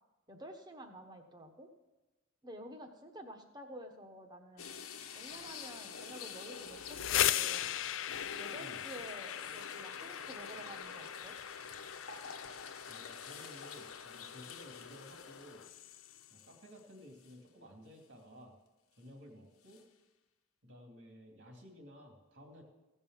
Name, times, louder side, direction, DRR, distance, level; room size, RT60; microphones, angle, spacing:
voice 1, 0.3-1.7 2.4-4.7 5.1-7.7 8.3-11.4, right 1 dB, 20° right, 4 dB, 1.2 m, -50 dB
sound 1, 4.6-16.8 17.2-17.3 19.7-19.8, left 6 dB, 85° left, 1.1 m, -47 dB
sound 2, 6.7-16.4, left 12 dB, 60° left, 0.4 m, -39 dB
voice 2, 12.8-15.7 16.3-18.6 18.9-19.9 20.6-22.6, equal, 60° right, 1 dB, 2.7 m, -55 dB
16.0 x 5.5 x 7.7 m, 1.1 s
head